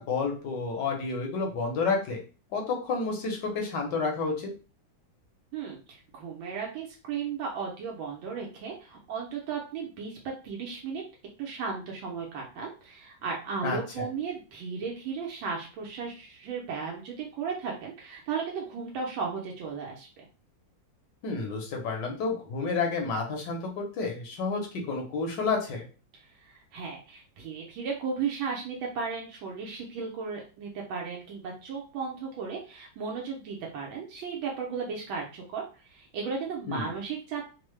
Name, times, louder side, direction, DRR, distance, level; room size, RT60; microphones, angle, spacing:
voice 1, 0.0-2.2 2.5-4.5 13.6-14.1 21.2-25.8 36.7-36.9, left 4 dB, 70° left, 2 dB, 1.3 m, -30 dB
voice 2, 5.5-10.2 10.4-11.0 11.4-20.1 26.4-37.5, right 5 dB, 85° right, -1 dB, 1.5 m, -35 dB
3.7 x 2.0 x 3.1 m, 0.34 s
omnidirectional pair, 2.1 m